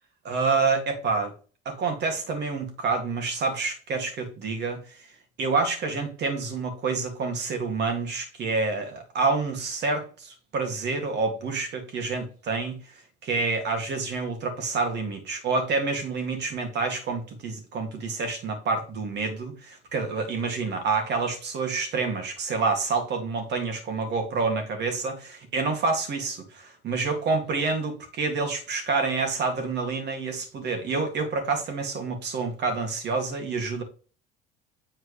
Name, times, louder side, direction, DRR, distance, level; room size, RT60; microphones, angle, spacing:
voice 1, 0.2-1.3 1.7-5.1 5.4-12.7 13.2-33.8, right 4 dB, 55° right, 2.4 m, -28 dB
7.8 x 4.5 x 3.3 m
hypercardioid pair, 70°, 21 cm